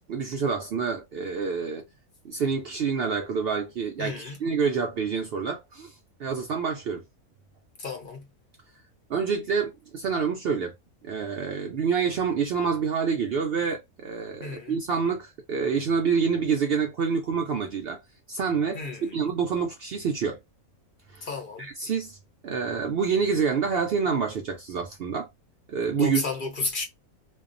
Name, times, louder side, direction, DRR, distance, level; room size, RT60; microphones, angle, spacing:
voice 1, 0.1-1.8 2.2-5.9 6.2-7.0 9.1-10.7 11.0-18.0 18.3-20.4 21.1-21.3 21.6-22.2 22.4-25.3 25.7-26.2, right 6 dB, 80° right, 0.5 m, -27 dB
voice 2, 4.0-4.4 7.8-8.3 14.4-14.8 18.7-19.2 21.2-21.7 26.0-26.8, left 3 dB, 55° left, 0.6 m, -33 dB
2.6 x 2.3 x 2.5 m
omnidirectional pair, 1.6 m